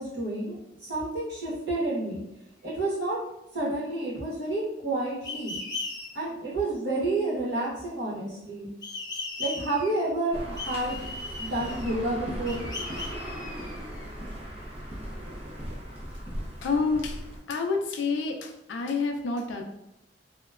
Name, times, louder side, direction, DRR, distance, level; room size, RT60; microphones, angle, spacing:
voice 1, 0.0-2.2 2.6-3.2 3.5-5.6 6.1-8.7 9.4-11.0 11.4-12.7, right 2 dB, 65° right, -8 dB, 1.2 m, -30 dB
sound 1, 5.2-6.1 8.8-10.0 10.6-12.0 12.5-14.0, left 3 dB, 20° left, 0.5 m, -37 dB
sound 2, 10.3-17.4, equal, 35° right, 0.6 m, -38 dB
voice 2, 16.6-17.2 17.5-19.6, left 4 dB, 80° left, 3 dB, 0.4 m, -28 dB
2.9 x 2.1 x 2.3 m, 0.87 s
head